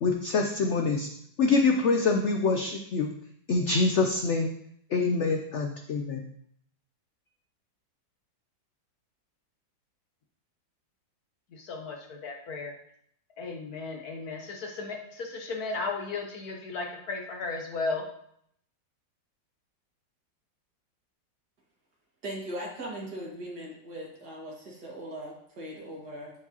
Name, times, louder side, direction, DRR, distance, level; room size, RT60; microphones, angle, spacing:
voice 1, 0.0-1.1 1.4-3.1 3.5-4.5 4.9-6.2, left 4 dB, 75° left, 4 dB, 0.6 m, -25 dB
voice 2, 11.6-12.7 13.4-18.0, left 3 dB, 60° left, 2 dB, 1.3 m, -35 dB
voice 3, 22.2-26.3, right 1 dB, 60° right, -3 dB, 2.4 m, -39 dB
13.5 x 4.6 x 2.9 m, 0.69 s
omnidirectional pair, 2.0 m